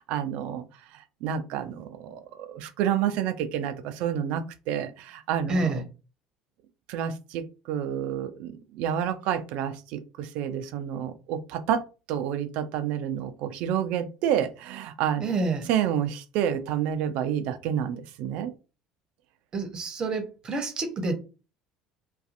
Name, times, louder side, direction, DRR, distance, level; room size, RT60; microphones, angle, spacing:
voice 1, 0.1-0.6 0.9-5.8 6.9-11.8 12.1-15.3 15.7-18.5, right 9 dB, 70° right, 0.4 m, -29 dB
voice 2, 5.5-5.8 15.2-15.7 19.5-21.1, right 3 dB, 40° right, 0.8 m, -28 dB
2.5 x 2.3 x 2.5 m
hypercardioid pair, 75°, 2 cm